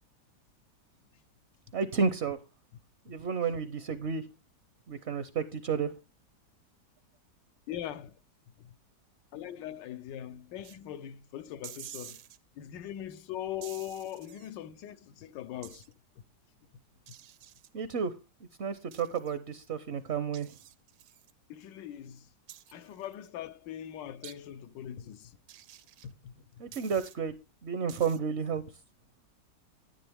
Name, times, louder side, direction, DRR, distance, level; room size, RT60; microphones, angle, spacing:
voice 1, 1.7-2.4 3.1-4.2 4.9-5.9 17.7-18.1 18.6-20.5 26.6-27.3 27.6-28.6, right 6 dB, 55° right, 0.7 m, -31 dB
voice 2, 7.7-8.2 8.6-8.7 9.3-12.2 12.6-15.8 21.5-22.3 22.7-25.4 26.0-26.6, left 11 dB, 85° left, 1.4 m, -41 dB
sound 1, 10.6-10.8 11.6-12.4 13.6-14.5 15.6-15.9 17.1-17.7 18.9-19.4 20.3-21.3 22.5-23.2 24.2-24.4 25.5-26.1 26.7-27.2 27.9-28.2, right 12 dB, 70° right, 1.2 m, -49 dB
10.0 x 10.0 x 3.4 m
omnidirectional pair, 1.9 m